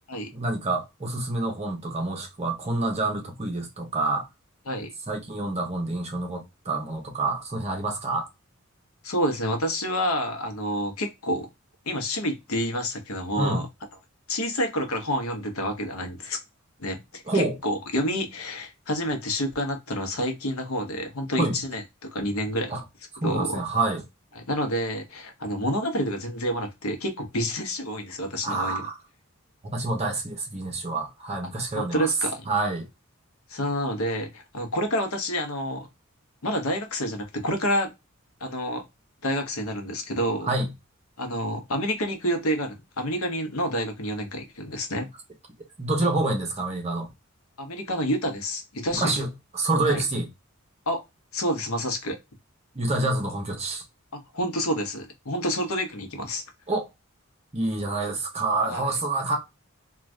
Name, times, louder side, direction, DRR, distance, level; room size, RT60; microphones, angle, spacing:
voice 1, 0.3-4.3 5.1-8.3 13.4-13.6 17.3-17.6 21.4-21.6 22.7-22.8 23.2-24.0 28.4-29.0 29.6-32.1 32.5-32.9 40.5-40.7 45.8-47.1 48.9-50.3 52.7-53.8 56.7-56.9 57.5-59.4, right 2 dB, 30° right, 0.8 m, -27 dB
voice 2, 9.0-11.5 11.9-13.7 14.3-16.4 16.8-22.8 23.2-23.6 24.5-28.8 31.8-32.5 33.5-35.9 36.4-37.9 38.4-38.8 39.2-40.5 41.2-45.1 47.6-49.2 49.9-50.0 50.9-51.0 51.3-52.2 54.1-56.4 58.7-58.8, equal, 80° left, 0.8 m, -28 dB
2.5 x 2.4 x 3.1 m
head